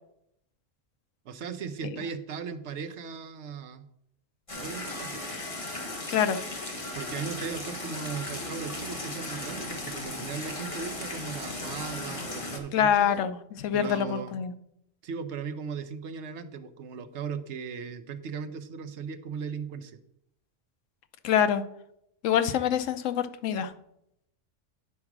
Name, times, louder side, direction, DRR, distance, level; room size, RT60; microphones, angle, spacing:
voice 1, 1.2-3.8 4.5-5.4 6.9-13.2 13.7-14.4 15.0-20.0, right 6 dB, 70° right, 10 dB, 1.0 m, -37 dB
sound 1, 4.5-12.6, left 2 dB, 25° left, 1.3 m, -36 dB
voice 2, 6.1-6.4 12.7-14.5 21.2-21.6 22.2-23.7, left 8 dB, 90° left, 11 dB, 1.0 m, -25 dB
9.7 x 4.8 x 6.0 m, 0.78 s
omnidirectional pair, 1.3 m